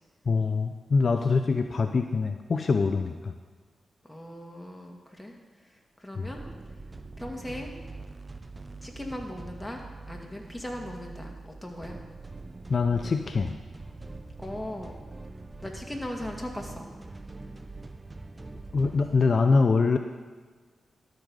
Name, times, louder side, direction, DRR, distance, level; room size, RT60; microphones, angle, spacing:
voice 1, 0.3-3.3 6.2-6.3 12.7-13.5 18.7-20.0, left 4 dB, 55° left, 6 dB, 0.5 m, -24 dB
voice 2, 4.0-5.4 6.0-6.4 7.2-7.7 8.8-9.8 10.1-12.0 14.4-15.0 15.6-16.9, left 1 dB, 10° left, 1 dB, 2.1 m, -38 dB
sound 1, 6.2-19.2, right 3 dB, 30° right, 0.6 m, -43 dB
12.0 x 5.3 x 6.4 m, 1.4 s
supercardioid pair, 45°, 0 cm